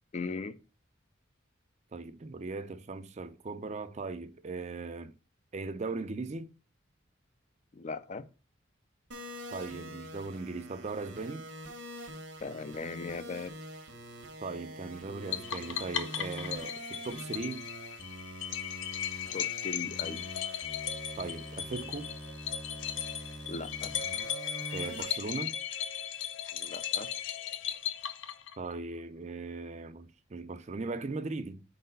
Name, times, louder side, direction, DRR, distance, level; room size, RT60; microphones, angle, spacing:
voice 1, 0.1-0.6 7.7-8.3 12.4-13.6 19.3-20.2 23.4-23.9 26.5-27.1, left 4 dB, 35° left, 0.4 m, -39 dB
voice 2, 1.9-5.1 5.5-6.5 9.5-11.5 14.4-17.6 21.2-22.1 24.7-25.6 28.6-31.6, right 3 dB, 35° right, 0.4 m, -38 dB
sound 1, 9.1-25.0, right 1 dB, 80° right, 1.3 m, -45 dB
sound 2, 15.3-28.8, left 9 dB, 75° left, 0.7 m, -37 dB
4.6 x 4.0 x 5.3 m
head